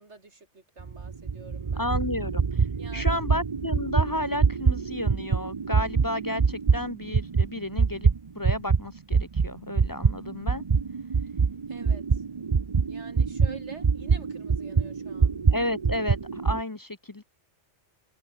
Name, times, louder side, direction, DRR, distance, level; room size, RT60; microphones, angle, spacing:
voice 1, 0.0-1.8 2.8-3.2 11.7-12.2 12.9-15.4, right 3 dB, 75° right, 3.5 m, -48 dB
sound 1, 0.8-8.8 9.1-16.6, right 5 dB, 35° right, 0.7 m, -25 dB
voice 2, 1.8-2.4 2.9-8.1 8.3-10.7 15.5-17.2, left 1 dB, 25° left, 0.6 m, -32 dB
open air
omnidirectional pair, 1.2 m